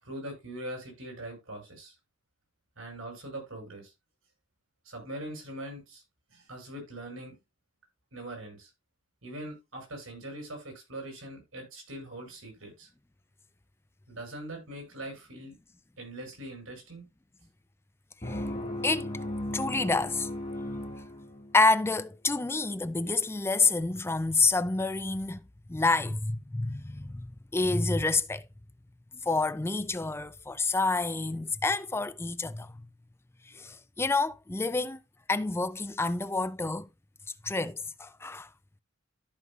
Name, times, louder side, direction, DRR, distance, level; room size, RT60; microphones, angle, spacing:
voice 1, 0.0-1.9 2.8-3.9 4.8-6.0 6.3-7.4 8.1-8.7 9.2-12.9 14.1-15.5 16.0-17.0, right 1 dB, 85° right, 6.3 m, -42 dB
sound 1, 18.2-21.8, left 1 dB, 30° left, 1.9 m, -36 dB
voice 2, 19.5-20.3 21.5-25.4 25.7-27.3 27.5-28.5 29.2-32.7 33.5-35.0 35.3-36.9 37.4-38.5, left 3 dB, 10° left, 0.4 m, -28 dB
14.0 x 5.5 x 2.4 m
head